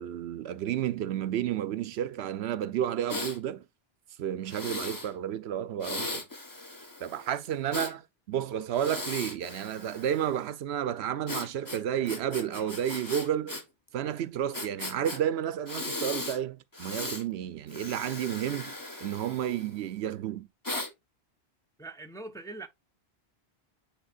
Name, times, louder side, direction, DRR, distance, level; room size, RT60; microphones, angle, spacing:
voice 1, 0.0-3.6 4.2-6.2 7.0-13.6 13.9-18.7 19.0-20.5, right 10 dB, 75° right, 0.8 m, -31 dB
Breathing, 3.1-3.4 4.5-5.1 5.8-7.9 8.7-10.3 11.3-13.6 13.9-14.0 14.5-15.2 15.7-16.4 16.7-17.2 17.7-19.9 20.6-20.9, left 2 dB, 20° left, 1.1 m, -38 dB
voice 2, 21.8-22.7, right 2 dB, 5° left, 0.6 m, -42 dB
9.0 x 4.4 x 2.4 m
omnidirectional pair, 1.1 m